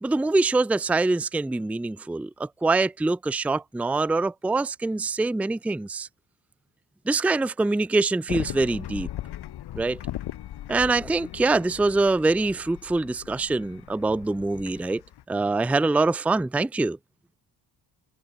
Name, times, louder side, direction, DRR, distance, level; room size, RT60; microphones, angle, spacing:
voice 1, 0.0-6.1 7.1-9.1 9.8-10.0 10.7-15.0 15.3-17.0, right 3 dB, 5° right, 0.5 m, -24 dB
sound 1, 8.3-15.2, left 13 dB, 70° left, 1.1 m, -38 dB
cardioid pair, 80°, 41 cm